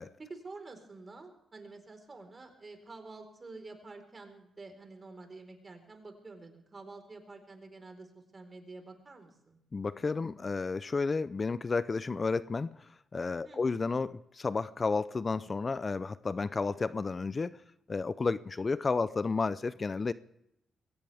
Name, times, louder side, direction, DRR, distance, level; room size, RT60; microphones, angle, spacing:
voice 1, 0.2-9.6 13.4-13.8, right 3 dB, 35° right, 5 dB, 4.4 m, -49 dB
voice 2, 9.7-17.6 17.9-20.1, left 4 dB, 40° left, 17 dB, 0.6 m, -32 dB
22.5 x 17.0 x 3.5 m, 0.81 s
supercardioid pair, 55°, 0 cm